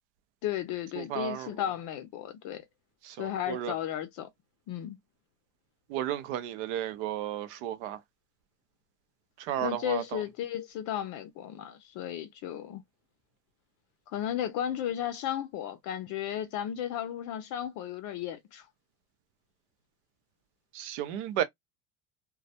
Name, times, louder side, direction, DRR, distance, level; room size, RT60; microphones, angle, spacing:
voice 1, 0.4-2.6 3.2-4.3 4.7-5.0 9.6-12.8 14.1-18.7, left 10 dB, 55° left, 0.5 m, -34 dB
voice 2, 1.0-1.6 3.0-3.7 5.9-8.0 9.4-10.2 20.7-21.4, right 11 dB, 70° right, 0.6 m, -33 dB
2.2 x 2.0 x 2.7 m
supercardioid pair, 95°, 36 cm